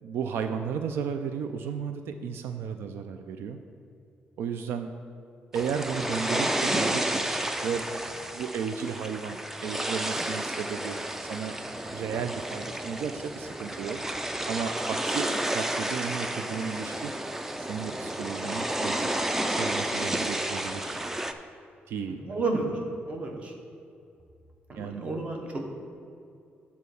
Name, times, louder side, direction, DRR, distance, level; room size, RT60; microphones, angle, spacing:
voice 1, 0.0-3.6 4.4-4.9 5.5-11.0 11.2-11.6 11.9-14.0 14.5-17.1 17.6-19.1 19.5-21.0 21.9-22.4 24.7-25.1, right 6 dB, 85° right, 7 dB, 0.4 m, -34 dB
sound 1, 5.5-21.3, right 1 dB, 10° right, 0.3 m, -31 dB
voice 2, 22.1-22.8 23.1-23.5 24.7-25.7, right 3 dB, 30° right, 2 dB, 0.9 m, -31 dB
8.2 x 4.2 x 6.9 m, 2.5 s
cardioid pair, 165°, 4 cm